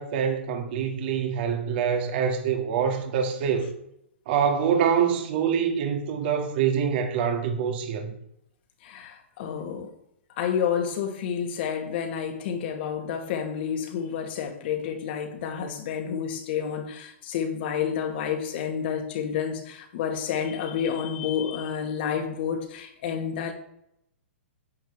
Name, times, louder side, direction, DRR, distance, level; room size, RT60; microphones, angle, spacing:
voice 1, 0.0-3.7 4.3-8.1, right 7 dB, 50° right, 1.8 m, -25 dB
voice 2, 8.8-9.9 10.4-23.5, left 8 dB, 50° left, 2.1 m, -29 dB
12.0 x 8.3 x 3.2 m
hypercardioid pair, 130°, 7 cm